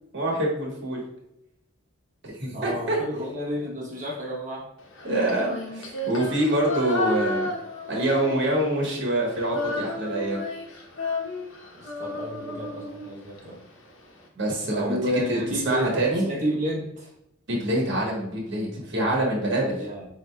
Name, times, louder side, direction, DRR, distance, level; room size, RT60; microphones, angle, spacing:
voice 1, 0.1-1.0 2.2-3.0 5.0-7.5 7.9-10.5 14.4-15.0 15.3-15.4 15.6-16.3 17.5-19.8, right 1 dB, 60° right, -2 dB, 1.2 m, -25 dB
voice 2, 2.5-4.7 11.7-13.6 14.7-17.1 19.7-20.1, equal, 35° right, -4 dB, 0.9 m, -31 dB
Female singing, 4.9-8.9 9.1-13.4, left 2 dB, 80° left, 0.9 m, -32 dB
7.3 x 2.7 x 2.2 m, 0.82 s
head